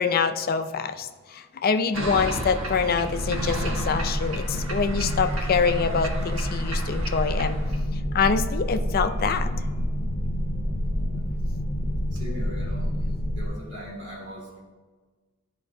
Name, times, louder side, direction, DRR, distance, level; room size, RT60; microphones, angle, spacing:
voice 1, 0.0-7.6 8.1-9.5, left 5 dB, 45° left, 9 dB, 0.4 m, -25 dB
sound 1, 1.9-7.8, right 1 dB, 80° right, 1.3 m, -33 dB
sound 2, 2.7-13.5, equal, 65° left, 0.9 m, -29 dB
sound 3, 4.8-11.2, equal, 40° right, 0.8 m, -36 dB
voice 2, 12.1-12.9 13.3-14.6, equal, 60° right, -4 dB, 2.4 m, -39 dB
12.0 x 4.6 x 2.7 m, 1.4 s
head